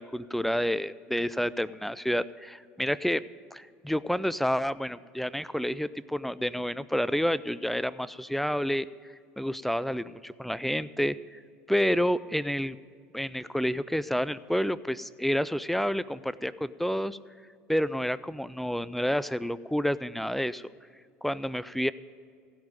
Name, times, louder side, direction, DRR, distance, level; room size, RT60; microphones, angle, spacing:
voice 1, 0.0-3.2 3.5-8.9 9.4-11.4 11.7-12.8 13.1-17.2 17.7-20.6 21.2-21.9, equal, 5° left, 17 dB, 0.4 m, -29 dB
16.0 x 5.3 x 9.0 m, 2.1 s
hypercardioid pair, 75°, 7 cm